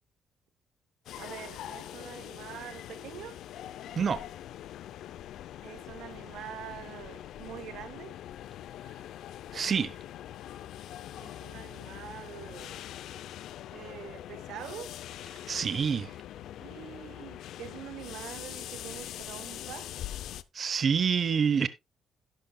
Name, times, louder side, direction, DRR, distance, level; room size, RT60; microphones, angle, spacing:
sound 1, 1.1-20.4, left 12 dB, 80° left, 0.5 m, -43 dB
voice 1, 1.2-3.4 5.6-8.2 11.2-12.8 13.7-14.9 16.6-19.9, right 10 dB, 85° right, 0.9 m, -45 dB
voice 2, 9.5-10.0 15.5-16.1 20.5-21.7, right 6 dB, 45° right, 0.7 m, -27 dB
11.5 x 10.5 x 2.2 m
cardioid pair, 90°, 0 cm